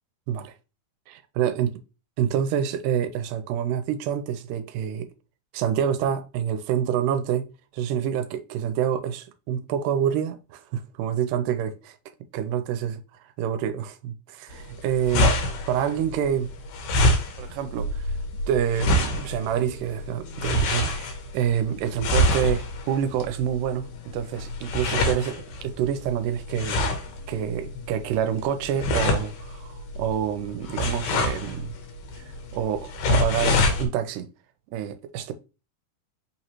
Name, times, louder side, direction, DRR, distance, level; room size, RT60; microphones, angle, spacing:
voice 1, 1.1-1.7 2.2-5.1 5.5-7.5 7.7-12.0 12.3-12.9 13.4-15.3 15.7-16.5 17.4-18.1 18.5-26.8 27.3-31.7 32.5-34.3 34.7-35.3, right 9 dB, 85° right, 2.1 m, -27 dB
sound 1, 14.5-33.9, left 1 dB, 80° left, 2.4 m, -27 dB
5.2 x 3.0 x 2.8 m
omnidirectional pair, 3.8 m